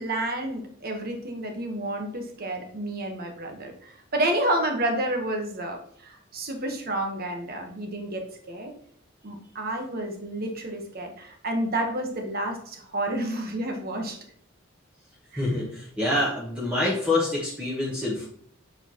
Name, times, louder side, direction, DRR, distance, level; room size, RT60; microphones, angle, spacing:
voice 1, 0.0-8.7 9.2-14.2 15.3-15.4, right 1 dB, 50° right, 3 dB, 1.3 m, -30 dB
voice 2, 15.4-18.3, left 2 dB, 5° right, -6 dB, 1.2 m, -26 dB
7.8 x 4.6 x 3.0 m, 0.62 s
head